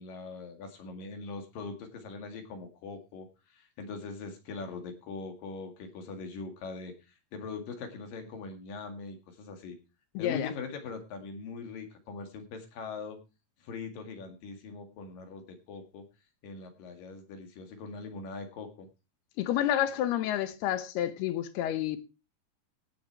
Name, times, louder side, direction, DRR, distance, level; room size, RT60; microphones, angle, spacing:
voice 1, 0.0-9.8 10.2-13.2 13.6-16.0 16.4-18.9, left 4 dB, 65° left, 3.6 m, -41 dB
voice 2, 10.1-10.5 19.4-22.0, left 11 dB, 85° left, 3.0 m, -29 dB
17.5 x 7.0 x 4.5 m
omnidirectional pair, 4.5 m